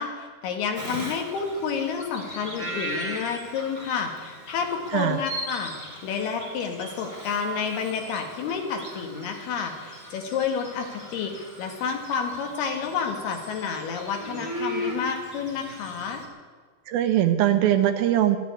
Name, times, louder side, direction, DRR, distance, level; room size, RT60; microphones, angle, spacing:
voice 1, 0.0-11.3 11.6-16.2, left 6 dB, 75° left, 4 dB, 3.5 m, -30 dB
Bird vocalization bird call bird song, 0.7-16.2, equal, 25° left, 0.9 m, -38 dB
voice 2, 16.9-18.4, right 12 dB, 80° right, 8 dB, 2.3 m, -21 dB
12.5 x 11.0 x 9.5 m, 1.5 s
omnidirectional pair, 4.7 m